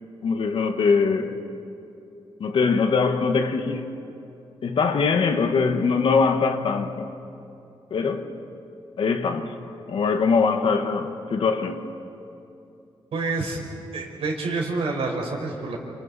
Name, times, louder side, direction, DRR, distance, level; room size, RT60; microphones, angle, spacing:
voice 1, 0.2-1.4 2.4-4.0 4.6-7.1 7.9-8.4 9.0-9.6 9.9-11.9, left 5 dB, 65° left, 1.5 m, -22 dB
voice 2, 13.1-13.6 13.9-15.8, right 3 dB, 80° right, 4.8 m, -27 dB
29.5 x 29.0 x 4.2 m
wide cardioid pair, 145°, 10 cm